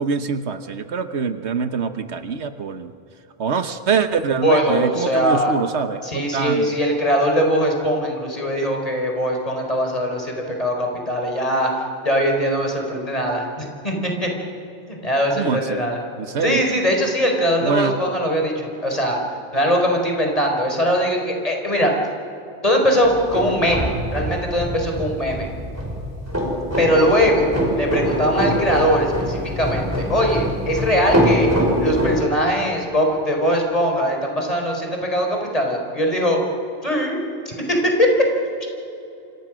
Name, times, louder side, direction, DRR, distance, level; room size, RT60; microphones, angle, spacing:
voice 1, 0.0-2.9 3.4-6.7 15.3-15.8 16.2-16.6 17.6-17.9, right 5 dB, 75° right, 9 dB, 1.3 m, -24 dB
voice 2, 4.4-5.5 6.0-11.7 12.0-14.3 14.9-16.0 16.4-19.2 19.5-21.9 22.6-25.5 26.8-27.5 27.8-31.5 31.8-36.4 36.8-37.2 37.5-38.3, equal, 30° left, 1 dB, 4.6 m, -21 dB
sound 1, 23.0-32.2, equal, 15° right, 5.1 m, -23 dB
28.5 x 26.0 x 6.3 m, 2.8 s
omnidirectional pair, 1.1 m